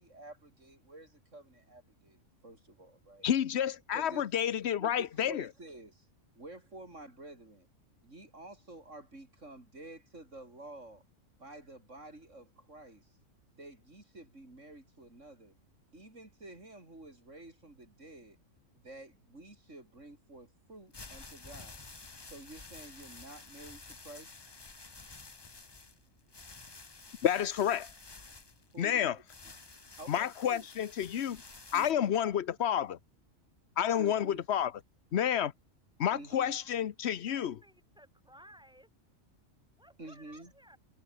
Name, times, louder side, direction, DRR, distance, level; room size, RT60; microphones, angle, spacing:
voice 1, 0.0-3.3 3.9-4.4 4.8-6.1 6.4-7.7 8.0-11.0 11.4-13.1 13.6-15.6 15.9-18.4 18.7-21.8 22.2-24.4 28.7-29.2 30.0-30.7 31.7-32.1 34.0-34.4 36.1-36.7 40.0-40.5, right 2 dB, 65° right, 6.2 m, -50 dB
voice 2, 3.2-5.5 27.2-27.9 28.8-29.2 30.1-31.4 31.7-33.0 33.8-34.7 35.1-35.5 36.0-37.6, left 9 dB, 60° left, 1.0 m, -30 dB
sound 1, 20.7-31.9, left 3 dB, 20° left, 0.9 m, -51 dB
voice 3, 37.3-38.9 39.8-40.8, equal, 5° right, 5.1 m, -58 dB
omnidirectional pair, 1.4 m